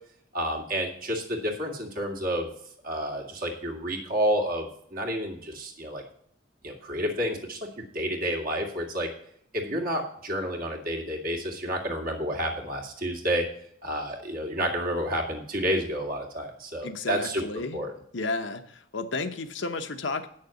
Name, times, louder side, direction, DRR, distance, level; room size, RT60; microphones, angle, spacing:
voice 1, 0.3-2.5 2.8-6.0 6.6-9.1 9.5-13.5 13.8-17.4 17.7-17.9, equal, 50° right, 1 dB, 2.1 m, -30 dB
voice 2, 16.8-17.8 18.1-20.3, left 3 dB, 70° left, 8 dB, 0.9 m, -32 dB
8.8 x 6.6 x 7.0 m, 0.67 s
head